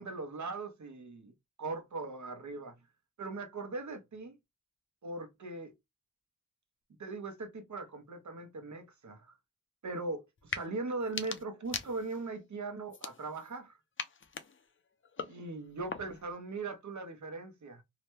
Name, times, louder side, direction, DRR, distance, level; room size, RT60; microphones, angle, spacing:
voice 1, 0.0-1.3 1.6-2.8 3.2-4.4 5.0-5.7 7.0-9.4 9.8-13.8 15.2-17.8, right 3 dB, 60° right, 0.9 m, -40 dB
sound 1, 10.4-10.7 11.0-12.3 12.9-13.6 14.0-16.3, left 5 dB, 40° left, 0.5 m, -42 dB
2.9 x 2.2 x 3.1 m
wide cardioid pair, 95°, 32 cm